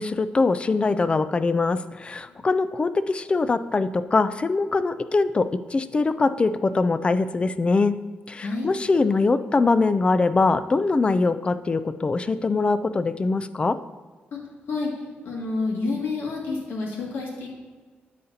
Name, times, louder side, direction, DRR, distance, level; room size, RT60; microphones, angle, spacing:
voice 1, 0.0-7.9 8.3-13.8, left 3 dB, 30° left, 13 dB, 0.4 m, -22 dB
voice 2, 15.2-17.5, left 3 dB, 75° left, -2 dB, 2.1 m, -29 dB
9.5 x 6.6 x 2.8 m, 1.4 s
cardioid pair, 95°, 4 cm